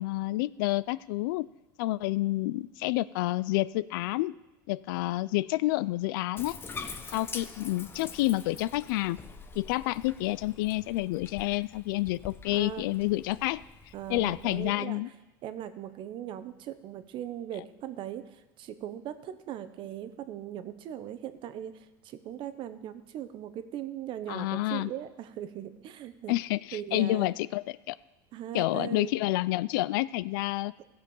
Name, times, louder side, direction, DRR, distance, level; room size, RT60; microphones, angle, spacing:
voice 1, 0.0-1.5 1.8-4.3 4.7-6.6 7.1-9.2 9.6-13.6 14.1-15.1 24.3-24.9 26.3-28.0 28.5-30.7, left 18 dB, 75° left, 18 dB, 0.4 m, -29 dB
Bathtub (filling or washing), 6.4-14.7, left 5 dB, 20° left, 0.8 m, -45 dB
voice 2, 12.5-12.8 13.9-15.0 15.4-26.4 26.7-27.3 28.3-29.1, right 11 dB, 45° right, 11 dB, 1.0 m, -39 dB
15.5 x 6.8 x 5.4 m, 1.1 s
supercardioid pair, 115°, 11 cm